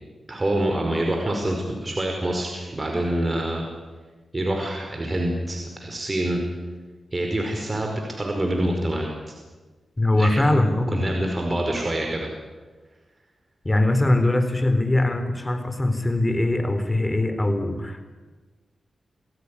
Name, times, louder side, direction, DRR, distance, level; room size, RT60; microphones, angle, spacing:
voice 1, 0.3-3.7 4.3-6.4 7.1-9.3 10.1-10.3 10.9-12.3, right 1 dB, 30° right, 1 dB, 5.2 m, -26 dB
voice 2, 10.0-11.1 13.6-18.0, left 1 dB, 25° left, 9 dB, 4.1 m, -21 dB
27.0 x 16.0 x 10.0 m, 1.3 s
cardioid pair, 60°, 0 cm